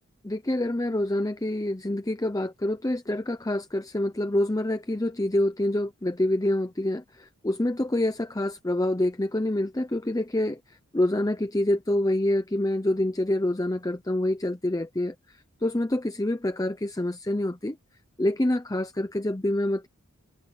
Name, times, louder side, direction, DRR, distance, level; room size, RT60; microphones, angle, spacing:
voice 1, 0.2-15.1 15.6-17.8 18.2-19.9, left 1 dB, 15° left, 0.7 m, -26 dB
head